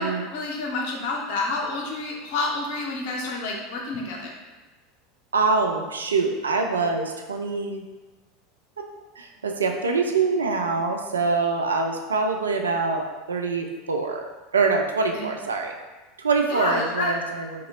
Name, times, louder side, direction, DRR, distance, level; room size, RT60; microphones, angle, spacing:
voice 1, 0.0-4.4 15.1-15.3 16.5-17.1, left 3 dB, 55° left, -1 dB, 0.7 m, -29 dB
voice 2, 5.3-7.8 9.2-14.2 14.5-15.7 16.2-17.7, right 4 dB, 75° right, 3 dB, 0.3 m, -24 dB
2.9 x 2.9 x 3.7 m, 1.2 s
figure-of-eight pair, 80°, 0 cm